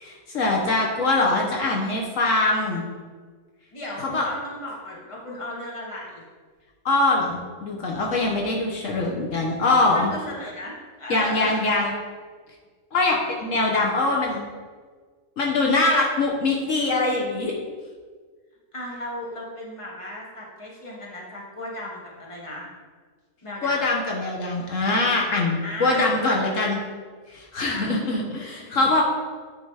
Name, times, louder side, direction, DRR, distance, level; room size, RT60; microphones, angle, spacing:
voice 1, 0.0-2.9 4.0-4.3 6.8-10.1 11.1-11.9 12.9-14.4 15.4-17.5 23.6-26.8 27.3-29.0, left 2 dB, 70° left, -1 dB, 1.4 m, -23 dB
voice 2, 3.7-6.2 9.9-11.7 18.7-22.7 23.4-23.9 25.6-26.1 27.7-28.1 28.6-28.9, left 1 dB, 25° left, -3 dB, 1.6 m, -36 dB
9.7 x 4.0 x 4.8 m, 1.5 s
omnidirectional pair, 1.4 m